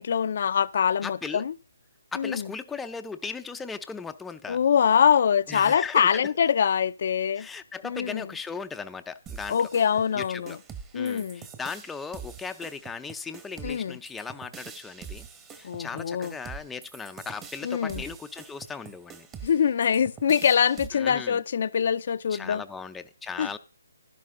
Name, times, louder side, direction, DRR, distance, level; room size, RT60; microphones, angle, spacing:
voice 1, 0.0-1.5 2.2-2.5 4.5-7.5 7.8-8.2 9.5-10.6 10.9-11.5 13.6-14.0 15.6-16.3 17.6-18.0 19.4-22.6 23.4-23.6, left 7 dB, 55° left, 0.5 m, -24 dB
voice 2, 1.0-1.5 2.1-4.6 5.5-6.3 7.4-9.6 10.1-10.6 10.9-15.3 15.5-19.3 20.9-21.4 22.3-23.6, left 5 dB, 5° left, 0.5 m, -37 dB
sound 1, 9.3-20.9, right 6 dB, 15° right, 1.1 m, -44 dB
11.5 x 11.0 x 3.7 m
hypercardioid pair, 150°, 0 cm